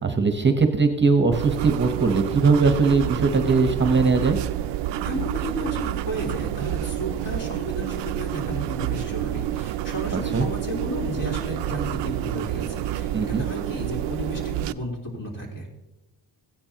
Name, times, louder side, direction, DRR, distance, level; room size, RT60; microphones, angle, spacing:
voice 1, 0.0-4.4 10.3-10.4 13.1-13.4, right 4 dB, 25° right, 6 dB, 1.0 m, -20 dB
sound 1, 1.3-14.7, right 13 dB, 70° right, 0.5 m, -29 dB
voice 2, 5.0-15.7, equal, 45° left, -2 dB, 3.7 m, -33 dB
15.5 x 9.8 x 2.9 m, 0.97 s
cardioid pair, 90°, 45 cm